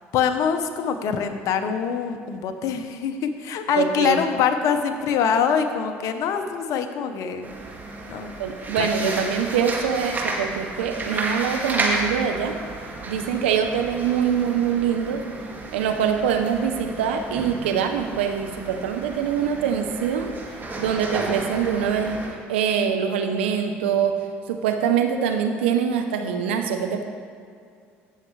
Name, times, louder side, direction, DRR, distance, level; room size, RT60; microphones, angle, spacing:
voice 1, 0.1-7.5 8.1-8.4 8.8-9.2, left 7 dB, 65° left, 7 dB, 0.9 m, -24 dB
voice 2, 3.8-4.2 8.4-12.6 13.1-15.2 15.7-20.3 20.8-22.2 22.5-24.1 24.5-27.0, right 7 dB, 90° right, 5 dB, 0.8 m, -24 dB
sound 1, 7.4-22.3, right 2 dB, 30° right, 2.2 m, -32 dB
16.5 x 6.6 x 3.3 m, 2.3 s
hypercardioid pair, 70°, 6 cm